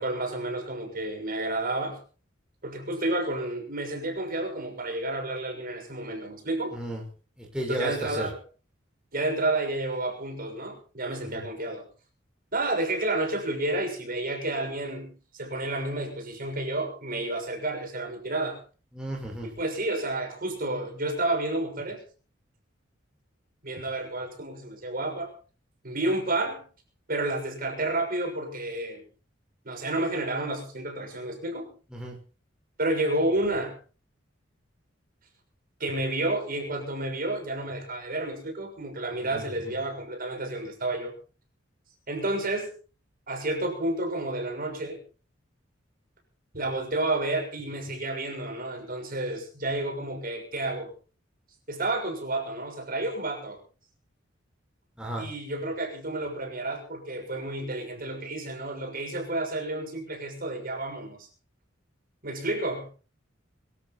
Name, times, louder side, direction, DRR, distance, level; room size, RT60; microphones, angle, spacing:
voice 1, 0.0-2.0 2.6-6.7 7.6-8.4 9.1-11.8 12.5-18.6 19.4-22.0 23.6-25.3 25.8-26.6 27.1-29.0 29.6-31.7 32.8-33.8 35.8-41.1 42.1-42.7 43.3-45.0 46.5-50.9 51.7-53.6 55.1-61.3 62.2-62.9, right 2 dB, 50° right, 3 dB, 6.7 m, -30 dB
voice 2, 6.7-7.0 7.4-8.3 11.2-11.4 18.9-19.5 31.9-32.2 39.3-39.7 55.0-55.3, right 1 dB, 5° right, -1 dB, 5.5 m, -33 dB
25.0 x 13.0 x 4.1 m, 0.39 s
head